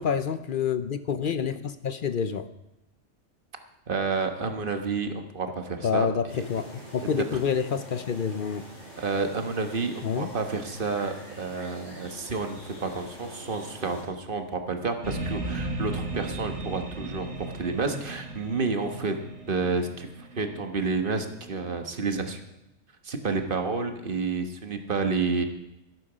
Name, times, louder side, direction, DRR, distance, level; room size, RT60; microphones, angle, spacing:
voice 1, 0.0-2.5 5.8-6.6 6.9-8.6 10.0-10.3, left 7 dB, 50° left, 12 dB, 0.7 m, -28 dB
voice 2, 3.9-6.1 7.3-7.4 9.0-19.2 19.5-22.4 23.0-25.4, right 4 dB, 45° right, 6 dB, 1.4 m, -30 dB
sound 1, 6.3-14.0, right 1 dB, 85° left, 6.8 m, -45 dB
sound 2, 15.0-22.4, right 2 dB, 65° right, 3.4 m, -36 dB
12.5 x 11.5 x 5.0 m, 0.91 s
omnidirectional pair, 1.3 m